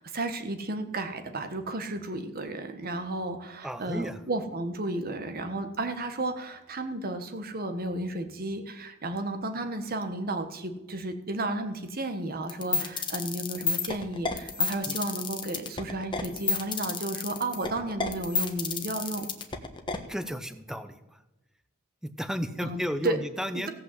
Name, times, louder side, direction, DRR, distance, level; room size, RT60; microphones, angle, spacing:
voice 1, 0.0-19.2 22.6-23.2 23.5-23.7, right 2 dB, 45° right, 7 dB, 1.4 m, -33 dB
voice 2, 3.6-4.2 12.7-12.9 14.8-15.0 20.1-21.0 22.0-23.7, equal, 5° right, 11 dB, 0.8 m, -33 dB
sound 1, 12.5-20.0, left 5 dB, 20° left, 1.2 m, -30 dB
16.5 x 5.8 x 7.8 m, 1.0 s
head